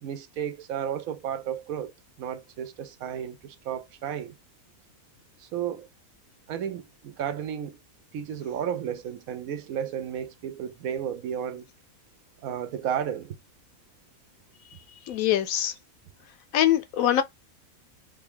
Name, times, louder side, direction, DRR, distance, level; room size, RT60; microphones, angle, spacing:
voice 1, 0.0-1.9 2.2-4.3 5.4-5.9 6.5-7.8 8.1-11.7 12.4-13.4, right 9 dB, 75° right, 1.0 m, -33 dB
voice 2, 15.1-15.7 16.5-17.2, left 11 dB, 70° left, 0.9 m, -23 dB
3.4 x 2.4 x 3.5 m
omnidirectional pair, 1.6 m